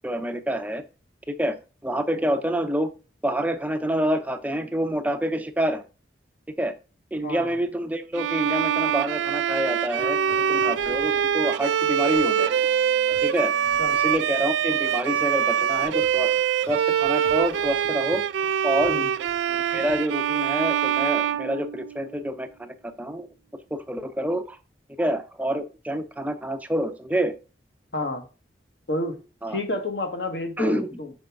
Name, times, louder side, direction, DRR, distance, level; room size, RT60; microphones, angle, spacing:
voice 1, 0.0-0.8 1.3-1.6 1.8-2.9 3.2-5.8 6.6-6.7 7.1-12.5 13.2-13.5 13.9-16.3 16.7-18.2 18.6-19.1 19.5-23.3 23.7-24.6 25.0-27.3 29.4-29.6 30.6-30.9, right 1 dB, 10° right, 9 dB, 0.4 m, -27 dB
voice 2, 7.2-7.6 13.8-14.0 18.9-19.1 27.9-28.3 28.9-31.1, left 2 dB, 65° left, 5 dB, 1.2 m, -30 dB
Bowed string instrument, 8.1-22.2, right 9 dB, 85° right, 0.3 m, -24 dB
sound 1, 10.0-20.4, left 2 dB, 45° left, 2.3 m, -44 dB
6.1 x 5.1 x 3.4 m, 0.33 s
head